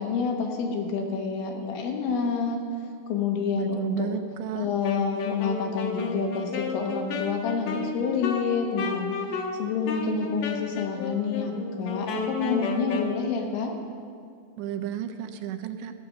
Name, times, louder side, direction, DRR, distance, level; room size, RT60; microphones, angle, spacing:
voice 1, 0.0-2.6 3.1-4.1 4.6-9.1 9.6-13.7, left 5 dB, 85° left, 1 dB, 3.7 m, -28 dB
voice 2, 3.6-4.7 14.6-15.9, right 10 dB, 80° right, 7 dB, 2.7 m, -32 dB
Wind instrument woodwind instrument, 4.8-13.2, left 4 dB, 70° left, 1.8 m, -32 dB
13.5 x 9.0 x 6.6 m, 2.1 s
omnidirectional pair, 5.2 m